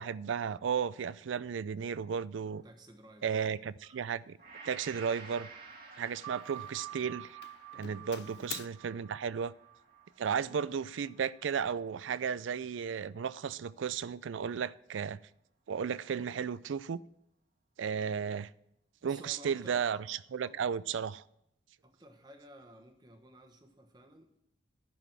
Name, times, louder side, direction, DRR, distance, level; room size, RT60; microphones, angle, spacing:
voice 1, 0.0-2.6 3.2-4.4 4.6-5.5 6.0-7.4 7.8-9.5 10.2-15.2 15.7-17.0 17.8-18.5 19.0-21.2, right 7 dB, 85° right, 0.4 m, -34 dB
Doorbell, 2.4-2.6 3.2-3.5 3.8-4.2 5.2-6.3 6.5-7.0 7.4-8.7, left 12 dB, 60° left, 0.3 m, -49 dB
voice 2, 2.6-3.4 8.2-8.6 10.4-10.7 19.0-20.1 20.4-20.6 21.8-24.4, right 1 dB, 20° right, 1.2 m, -55 dB
Gong, 4.4-12.7 13.2-13.3, right 4 dB, 50° right, 1.5 m, -54 dB
sound 1, 6.2-11.4, right 14 dB, 15° left, 1.5 m, -49 dB
11.0 x 6.2 x 5.9 m
head